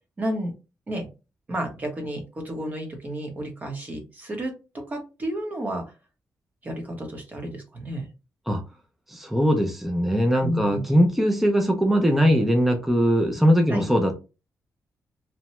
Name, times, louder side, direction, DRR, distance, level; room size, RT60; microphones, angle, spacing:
voice 1, 0.2-0.5 0.9-1.1 1.5-5.8 6.6-8.0 10.4-10.9 13.7-13.8, right 1 dB, 30° right, 0.9 m, -31 dB
voice 2, 9.1-14.1, equal, 5° right, 0.4 m, -21 dB
2.8 x 2.1 x 3.0 m
wide cardioid pair, 145°, 6 cm